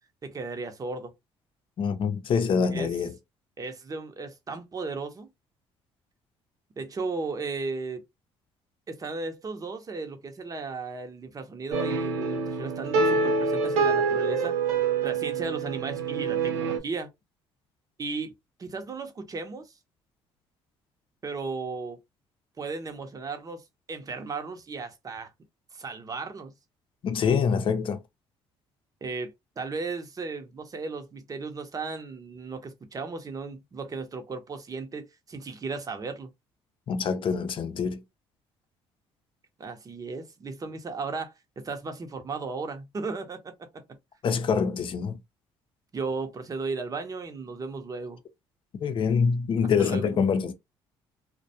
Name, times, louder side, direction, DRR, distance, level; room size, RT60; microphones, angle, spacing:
voice 1, 0.2-1.1 2.7-2.9 3.6-5.3 6.8-8.0 8.9-14.5 15.0-17.1 18.0-18.3 18.6-19.7 21.2-22.0 22.6-25.3 25.7-26.5 29.0-36.3 39.6-43.8 45.9-48.2 49.8-50.3, right 4 dB, 35° right, 0.7 m, -35 dB
voice 2, 1.8-3.1 27.0-28.0 36.9-38.0 44.2-45.2 48.8-50.5, left 6 dB, 50° left, 0.6 m, -25 dB
sound 1, 11.7-16.8, right 4 dB, 90° right, 0.6 m, -26 dB
2.2 x 2.2 x 2.7 m
supercardioid pair, 75°, 11 cm